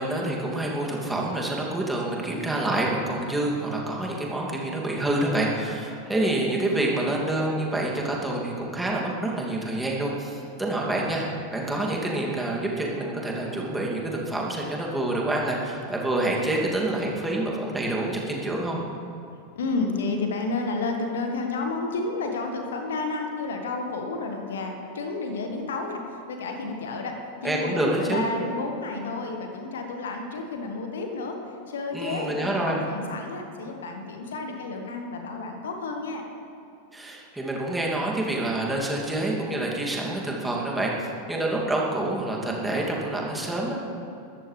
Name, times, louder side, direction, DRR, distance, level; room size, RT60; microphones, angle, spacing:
voice 1, 0.0-11.3 11.5-18.8 27.4-28.3 31.9-32.8 36.9-43.8, right 1 dB, 5° right, -3 dB, 2.6 m, -27 dB
voice 2, 19.5-26.0 26.3-27.2 27.4-31.4 31.7-36.2, left 3 dB, 60° left, 3 dB, 1.6 m, -31 dB
22.0 x 13.5 x 3.4 m, 2.8 s
figure-of-eight pair, 90°, 0 cm